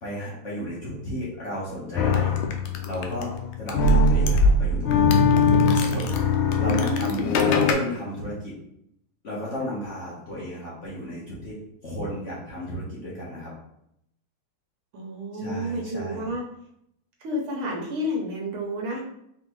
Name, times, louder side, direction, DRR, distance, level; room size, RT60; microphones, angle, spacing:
voice 1, 0.0-2.4 2.8-3.3 3.6-5.2 5.6-6.3 6.6-8.6 9.2-11.6 11.8-13.5 15.4-16.2, equal, 45° left, -6 dB, 1.2 m, -33 dB
sound 1, 2.0-7.7, left 3 dB, 80° left, 1.4 m, -21 dB
voice 2, 6.6-7.3 14.9-16.4 17.2-19.0, equal, 80° right, -1 dB, 1.8 m, -30 dB
4.4 x 3.7 x 3.0 m, 0.76 s
omnidirectional pair, 2.3 m